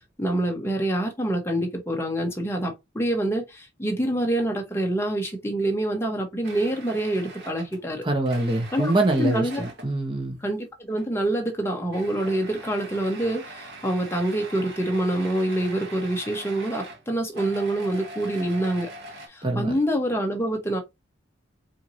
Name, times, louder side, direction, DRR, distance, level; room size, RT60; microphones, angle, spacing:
voice 1, 0.2-8.1 8.7-8.9 9.2-9.6 10.4-18.9 19.3-20.8, right 1 dB, 15° left, 1.0 m, -26 dB
sound 1, 6.4-10.0 10.9-11.3 11.6-19.3, right 1 dB, 55° right, 1.1 m, -42 dB
voice 2, 8.0-10.4 19.4-19.8, right 2 dB, 25° right, 1.0 m, -24 dB
4.5 x 2.8 x 2.7 m
head